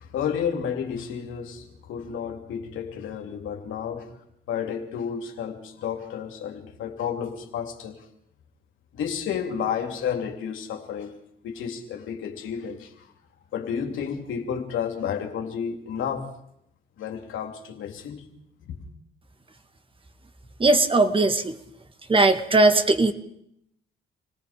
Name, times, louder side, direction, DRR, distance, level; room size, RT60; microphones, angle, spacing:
voice 1, 0.0-4.1 4.5-8.0 8.9-11.2 11.4-12.9 13.5-16.3 17.0-18.2 18.6-18.8, left 7 dB, 80° left, 3.0 m, -31 dB
voice 2, 20.6-21.6 22.1-23.1, right 2 dB, 25° right, 2.0 m, -19 dB
28.0 x 18.5 x 5.1 m
cardioid pair, 90°, 20 cm